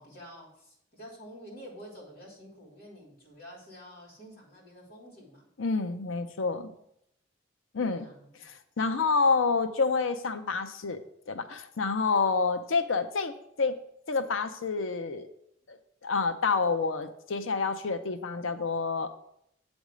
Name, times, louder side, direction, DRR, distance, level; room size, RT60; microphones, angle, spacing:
voice 1, 0.0-5.5 7.8-8.4, equal, 50° left, -4 dB, 3.1 m, -49 dB
voice 2, 5.6-6.7 7.7-8.1 8.4-11.0 11.3-13.3 13.6-13.7 14.1-15.3 15.7-19.1, left 4 dB, 85° left, 9 dB, 0.6 m, -28 dB
8.1 x 3.5 x 6.2 m, 0.74 s
head